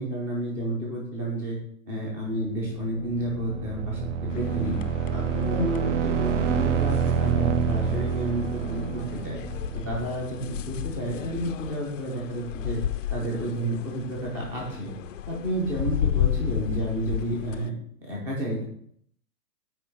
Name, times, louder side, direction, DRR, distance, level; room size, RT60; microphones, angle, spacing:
voice 1, 0.0-1.6 1.9-4.8 5.1-9.4 9.7-12.8 13.1-14.9 15.3-17.7 18.0-18.6, right 1 dB, 5° right, -2 dB, 0.5 m, -30 dB
sound 1, 2.9-10.5, right 7 dB, 50° right, 0.6 m, -28 dB
sound 2, 4.3-17.7, left 10 dB, 55° left, 0.5 m, -33 dB
8.6 x 3.0 x 5.8 m, 0.64 s
hypercardioid pair, 140°, 47 cm